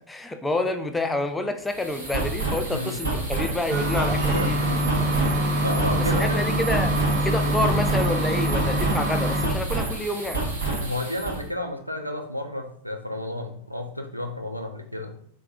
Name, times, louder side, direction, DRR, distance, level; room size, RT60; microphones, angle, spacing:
voice 1, 0.1-4.6 6.1-7.0 7.2-10.4, left 2 dB, 10° left, 7 dB, 0.3 m, -28 dB
sound 1, 1.6-11.4, right 2 dB, 65° right, 1.3 m, -29 dB
voice 2, 2.7-3.0 4.1-4.8 5.6-6.5 10.8-15.1, left 1 dB, 90° right, 4 dB, 0.4 m, -31 dB
sound 2, 3.7-9.5, equal, 45° right, 0.7 m, -24 dB
3.4 x 3.1 x 2.5 m, 0.66 s
figure-of-eight pair, 90°, 0 cm